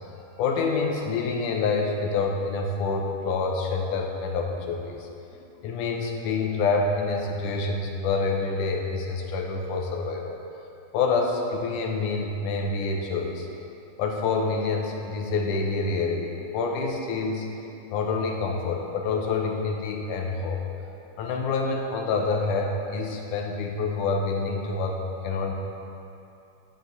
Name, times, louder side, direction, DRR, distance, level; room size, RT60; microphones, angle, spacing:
voice 1, 0.4-5.1 5.6-10.4 10.9-13.5 14.0-17.5 17.9-20.6 21.2-25.5, left 4 dB, 90° left, 1 dB, 2.3 m, -27 dB
11.0 x 6.4 x 3.9 m, 2.7 s
omnidirectional pair, 3.6 m